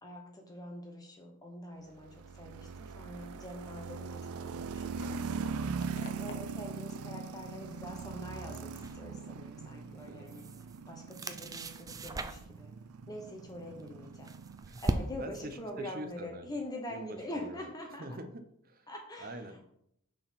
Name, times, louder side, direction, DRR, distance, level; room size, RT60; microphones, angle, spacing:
voice 1, 0.0-5.5 5.8-10.5 10.9-12.7 13.1-14.3 14.8-18.1 18.9-19.5, left 1 dB, 15° left, 2 dB, 1.1 m, -44 dB
sound 1, 2.0-15.2, right 5 dB, 85° right, 0.4 m, -41 dB
sound 2, 4.0-10.8, left 2 dB, 55° left, 1.3 m, -56 dB
voice 2, 6.1-6.5 10.1-10.4 13.7-13.8 14.6-14.8 15.2-16.6 16.9-17.6 18.0-18.9 19.2-19.6, right 1 dB, 40° right, 8 dB, 0.8 m, -45 dB
sound 3, 8.8-9.0 10.0-10.8 11.1-12.6 13.8-15.4, right 2 dB, 15° right, 0.4 m, -37 dB
6.6 x 4.0 x 5.8 m, 0.73 s
head